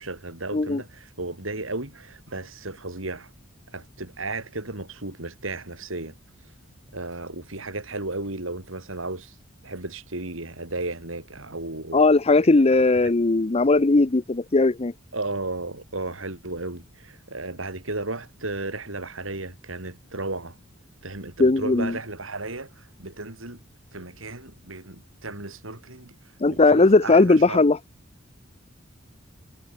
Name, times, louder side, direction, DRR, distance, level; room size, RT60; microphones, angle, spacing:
voice 1, 0.0-3.3 3.7-6.2 6.9-9.4 9.6-12.0 12.7-12.9 15.1-20.6 21.0-23.6 23.9-26.2 26.5-27.6, right 2 dB, 80° right, 5.2 m, -34 dB
voice 2, 11.9-14.9 21.4-21.9 26.4-27.8, left 3 dB, 30° left, 0.7 m, -18 dB
head